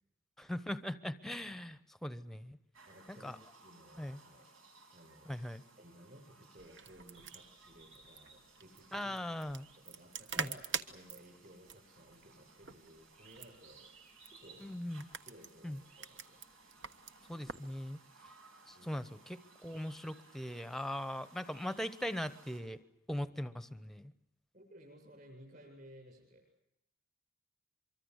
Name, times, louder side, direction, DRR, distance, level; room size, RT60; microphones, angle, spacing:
voice 1, 0.4-2.6 3.1-3.4 4.0-4.2 5.3-5.6 8.9-9.7 10.4-10.5 14.6-15.0 15.6-15.8 17.3-18.0 18.7-22.8 23.1-24.1, left 1 dB, ahead, 13 dB, 0.9 m, -40 dB
sound 1, 2.7-22.6, right 3 dB, 90° right, 6.8 m, -61 dB
voice 2, 2.9-4.5 4.9-5.4 5.8-9.1 9.7-10.6 10.9-14.1 14.4-14.7 15.2-16.4 18.7-19.1 24.5-26.5, equal, 45° right, 2 dB, 7.8 m, -57 dB
sound 2, 6.6-17.7, right 6 dB, 60° right, 1.4 m, -46 dB
24.5 x 24.5 x 8.1 m, 0.82 s
head